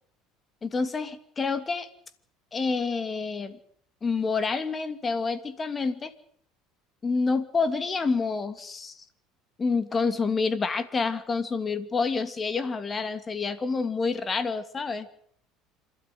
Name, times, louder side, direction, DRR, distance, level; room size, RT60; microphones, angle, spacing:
voice 1, 0.6-1.9 2.5-3.6 4.0-6.1 7.0-9.0 9.6-15.1, left 4 dB, 25° left, 12 dB, 2.6 m, -28 dB
27.0 x 13.0 x 9.4 m, 0.64 s
supercardioid pair, 90°, 0 cm